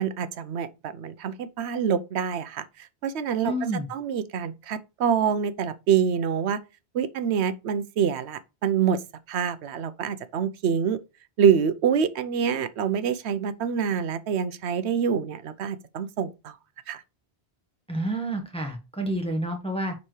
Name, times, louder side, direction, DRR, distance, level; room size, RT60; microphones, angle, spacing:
voice 1, 0.0-2.7 3.0-3.5 3.9-6.6 6.9-9.0 9.3-11.0 11.4-16.5 16.9-17.0, right 7 dB, 85° right, 1.0 m, -26 dB
voice 2, 3.4-3.9 17.9-19.9, right 1 dB, 5° left, 1.3 m, -29 dB
9.8 x 4.2 x 3.2 m
omnidirectional pair, 1.1 m